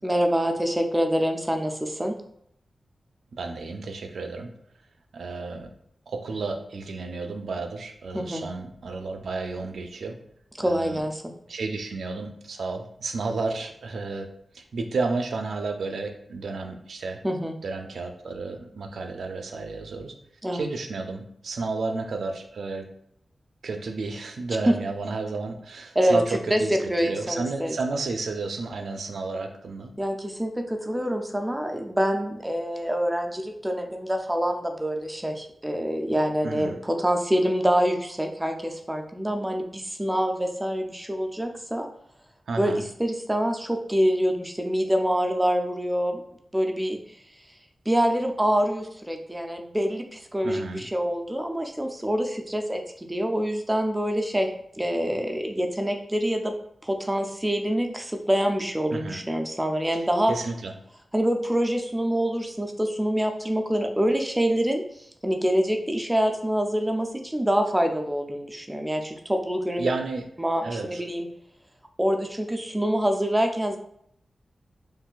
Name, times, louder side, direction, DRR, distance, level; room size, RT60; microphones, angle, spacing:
voice 1, 0.0-2.1 8.1-8.4 10.6-11.2 17.2-17.5 20.4-20.7 24.7-24.8 26.0-26.2 26.5-27.8 30.0-41.9 42.6-42.7 43.0-46.2 46.5-47.0 47.9-54.5 54.8-56.5 56.8-60.3 61.1-64.8 65.2-69.9 70.4-71.3 72.0-73.8, equal, 10° right, 4 dB, 0.3 m, -25 dB
voice 2, 3.3-4.5 5.1-5.7 6.1-10.2 10.6-11.0 11.5-14.3 14.5-17.2 17.6-20.1 20.5-22.9 23.6-29.9 36.4-36.8 42.5-42.8 50.4-50.9 58.9-59.2 60.3-60.7 69.0-69.1 69.8-70.2 70.6-71.0, right 3 dB, 80° right, 5 dB, 0.4 m, -32 dB
3.8 x 2.5 x 2.3 m, 0.72 s
wide cardioid pair, 165°, 0 cm